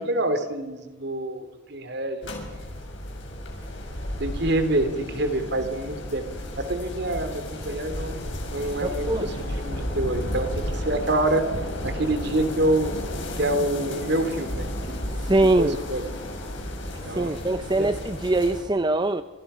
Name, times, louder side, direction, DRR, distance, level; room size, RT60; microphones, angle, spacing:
voice 1, 0.0-2.3 4.2-6.2 6.6-9.3 9.6-11.5 11.8-13.0 13.3-15.0 15.4-16.1 17.0-17.3 17.8-17.9, right 1 dB, 55° right, 9 dB, 3.0 m, -26 dB
sound 1, 2.2-18.6, left 1 dB, 60° left, 6.2 m, -33 dB
voice 2, 8.8-9.3 15.2-15.8 17.1-19.2, right 2 dB, 20° right, 10 dB, 0.7 m, -22 dB
28.5 x 27.0 x 5.7 m, 1.2 s
head